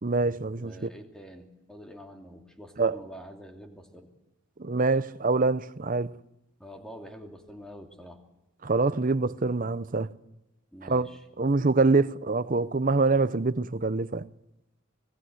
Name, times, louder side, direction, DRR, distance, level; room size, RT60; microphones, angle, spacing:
voice 1, 0.0-0.9 2.8-3.0 4.6-6.1 8.6-10.1 10.8-11.1 11.4-14.2, right 3 dB, 40° right, 0.7 m, -25 dB
voice 2, 0.6-4.1 6.6-8.2 10.7-11.2, equal, 5° left, 2.7 m, -46 dB
25.5 x 19.5 x 7.9 m
head